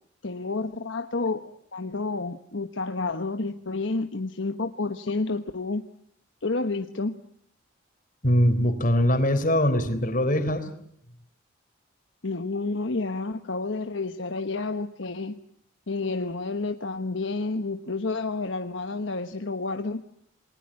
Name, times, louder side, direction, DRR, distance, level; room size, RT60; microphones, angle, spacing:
voice 1, 0.2-5.8 6.4-7.2 12.2-15.3 15.9-20.0, left 3 dB, 70° left, 7 dB, 1.1 m, -30 dB
voice 2, 8.2-10.7, equal, 40° left, 9 dB, 3.6 m, -22 dB
28.5 x 21.0 x 8.7 m, 0.68 s
head